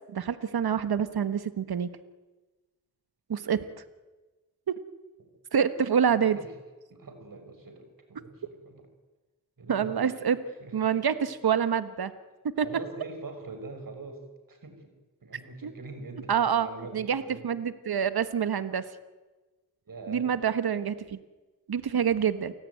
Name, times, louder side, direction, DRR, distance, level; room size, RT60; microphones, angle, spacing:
voice 1, 0.1-1.9 3.3-3.6 4.7-4.8 5.5-6.4 9.7-10.4 10.7-12.1 12.6-12.7 15.6-15.7 16.3-16.7 16.9-18.8 20.1-21.2 21.7-22.5, right 7 dB, 85° right, 12 dB, 1.3 m, -26 dB
voice 2, 6.9-8.9 9.6-11.1 12.6-14.9 15.2-17.5 19.9-20.3, right 3 dB, 65° right, 7 dB, 5.8 m, -43 dB
29.0 x 18.0 x 9.4 m, 1.2 s
cardioid pair, 60°, 36 cm